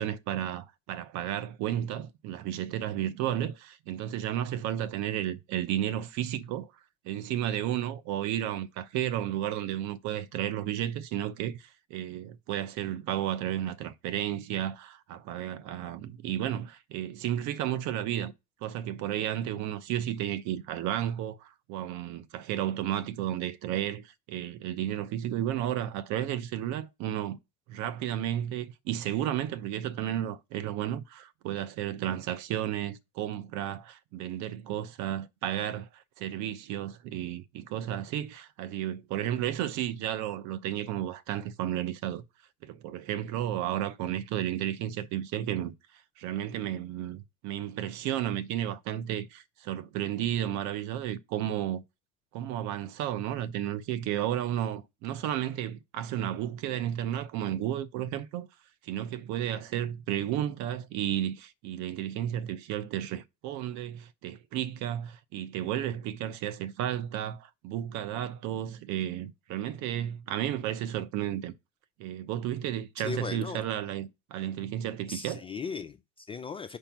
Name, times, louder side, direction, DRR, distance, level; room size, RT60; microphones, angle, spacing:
voice 1, 0.0-6.7 7.0-18.3 18.6-27.4 27.7-42.2 42.6-45.7 46.2-51.8 52.3-58.5 58.8-71.5 72.0-75.4, right 11 dB, 50° right, 0.8 m, -33 dB
voice 2, 73.0-73.6 75.1-76.8, left 5 dB, 15° left, 0.4 m, -37 dB
5.0 x 4.6 x 5.9 m
hypercardioid pair, 90°, 38 cm